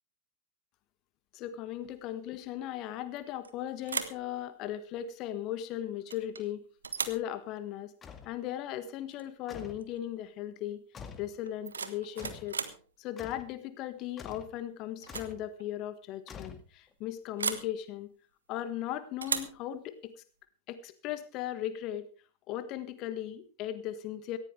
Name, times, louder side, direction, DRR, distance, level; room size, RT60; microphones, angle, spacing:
voice 1, 1.3-6.7 7.0-7.9 8.2-10.8 11.2-12.6 13.0-18.1 18.5-20.1 20.7-22.1 22.5-24.4, left 12 dB, 40° left, 12 dB, 1.5 m, -37 dB
sound 1, 3.2-3.5 3.8-4.3 6.1-6.5 6.8-7.3 9.1-9.3 9.6-10.0 11.4-12.8 14.3-14.6 15.0-15.3 15.6-15.7 17.4-17.7 19.2-19.6, right 5 dB, 75° right, 1.4 m, -36 dB
sound 2, 8.0-8.4 9.5-9.9 10.9-11.3 12.2-12.5 13.2-13.5 14.2-14.6 15.1-15.4 16.3-16.9, left 6 dB, 20° left, 2.0 m, -46 dB
18.5 x 15.0 x 3.4 m, 0.36 s
figure-of-eight pair, 90°, 0 cm